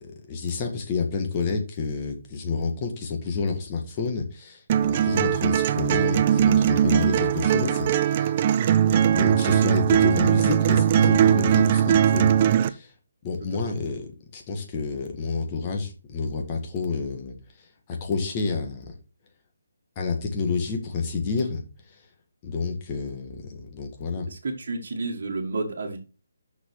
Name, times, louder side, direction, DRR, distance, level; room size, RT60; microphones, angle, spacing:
voice 1, 0.0-8.3 8.8-12.9 13.2-17.3 17.9-19.0 20.0-21.6 22.4-24.3, left 4 dB, 25° left, 3 dB, 1.8 m, -29 dB
sound 1, 4.7-12.7, right 9 dB, 30° right, 0.5 m, -20 dB
voice 2, 9.1-9.5 13.5-13.7 24.3-26.0, right 3 dB, 50° right, -2 dB, 2.0 m, -32 dB
6.2 x 6.1 x 6.3 m, 0.33 s
hypercardioid pair, 165°, 0 cm